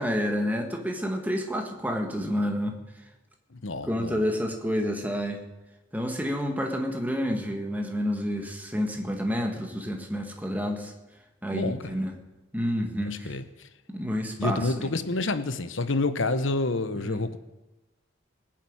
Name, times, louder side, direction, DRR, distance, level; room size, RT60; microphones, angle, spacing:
voice 1, 0.0-2.8 3.8-5.4 5.9-10.9 11.4-12.2 12.5-13.4 13.9-14.9 17.0-17.2, equal, 10° right, 2 dB, 1.8 m, -29 dB
voice 2, 3.5-4.2 11.5-11.9 13.0-13.4 14.4-17.4, left 2 dB, 75° left, 11 dB, 1.0 m, -28 dB
19.5 x 7.6 x 8.9 m, 1.1 s
head